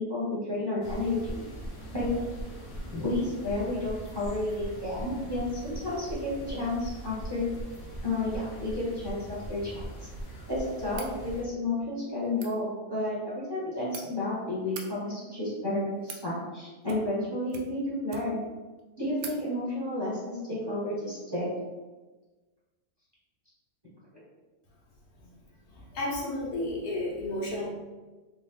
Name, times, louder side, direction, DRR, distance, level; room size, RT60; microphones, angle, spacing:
voice 1, 0.0-1.4 1.9-2.1 2.9-7.5 8.0-9.9 10.5-18.4 19.0-21.5, left 2 dB, 20° right, -8 dB, 1.1 m, -31 dB
sound 1, 0.8-11.4, right 1 dB, 60° left, 1.1 m, -40 dB
sound 2, 10.9-11.2 12.2-12.5 13.5-14.0 14.6-14.9 15.7-16.3 16.8-17.2 17.5-18.5 18.8-18.9 19.2-19.4, right 6 dB, 65° right, 0.7 m, -43 dB
voice 2, 25.7-27.7, left 1 dB, 75° left, -4 dB, 1.4 m, -32 dB
3.5 x 2.4 x 3.7 m, 1.2 s
omnidirectional pair, 1.6 m